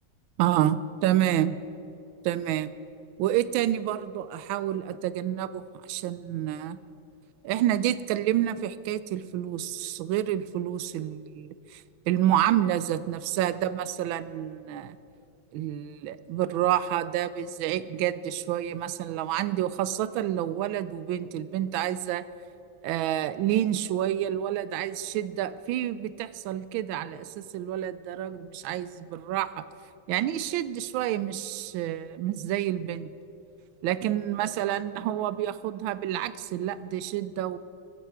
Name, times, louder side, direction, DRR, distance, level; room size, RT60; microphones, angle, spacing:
voice 1, 0.4-1.6 2.2-2.7 3.2-5.6 5.9-6.8 7.4-15.0 15.5-22.2 22.8-29.6 30.1-33.1 33.8-37.6, right 12 dB, 80° right, 15 dB, 1.3 m, -28 dB
23.0 x 9.1 x 4.7 m, 2.6 s
omnidirectional pair, 2.3 m